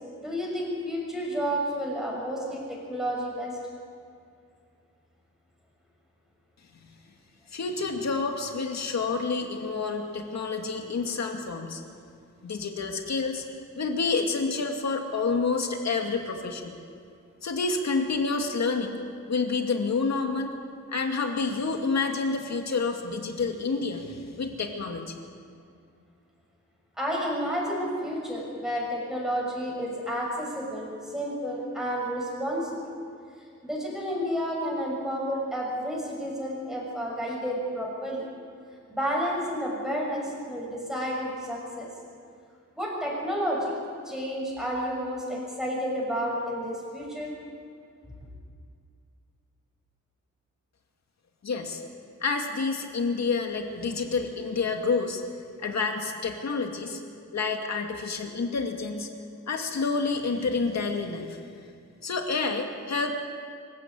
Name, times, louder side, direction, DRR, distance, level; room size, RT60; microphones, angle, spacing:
voice 1, 0.2-3.6 27.0-32.8 33.6-38.3 38.9-41.9 42.8-43.7 44.0-47.3, equal, ahead, -3 dB, 6.6 m, -31 dB
voice 2, 7.5-11.8 12.4-13.4 13.7-16.7 17.4-19.0 19.3-20.5 20.9-25.1 51.4-51.8 52.2-55.2 55.6-57.0 57.3-59.1 59.5-61.4 62.0-63.1, left 4 dB, 55° left, 3 dB, 2.5 m, -28 dB
26.5 x 15.5 x 8.6 m, 2.3 s
wide cardioid pair, 175°, 31 cm